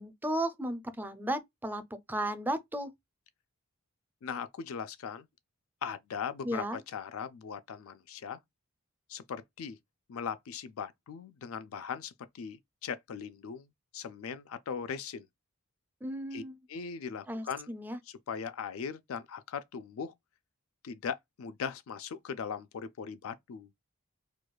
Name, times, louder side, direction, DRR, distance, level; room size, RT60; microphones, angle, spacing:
voice 1, 0.0-1.8 2.1-2.9 6.4-6.8 16.0-16.6 17.3-18.0, right 1 dB, 10° right, 0.5 m, -34 dB
voice 2, 4.2-5.3 5.8-8.4 9.1-9.8 10.1-13.7 13.9-15.3 16.3-16.4 16.7-17.7 18.1-20.1 20.8-23.7, left 6 dB, 80° left, 0.4 m, -39 dB
4.7 x 2.3 x 2.2 m
head